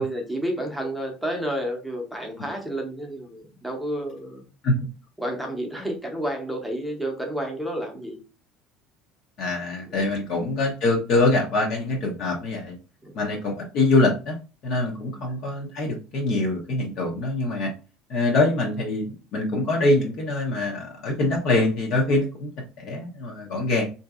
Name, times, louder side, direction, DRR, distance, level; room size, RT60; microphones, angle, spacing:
voice 1, 0.0-4.5 5.2-8.2 9.9-10.2 13.0-13.2 15.0-15.3, right 1 dB, ahead, 1 dB, 0.7 m, -31 dB
voice 2, 9.4-12.8 13.1-14.4 14.6-17.7 18.1-19.1 19.3-22.5 22.8-23.8, left 2 dB, 50° left, 0 dB, 0.8 m, -24 dB
3.8 x 2.6 x 2.3 m, 0.33 s
cardioid pair, 150°, 0 cm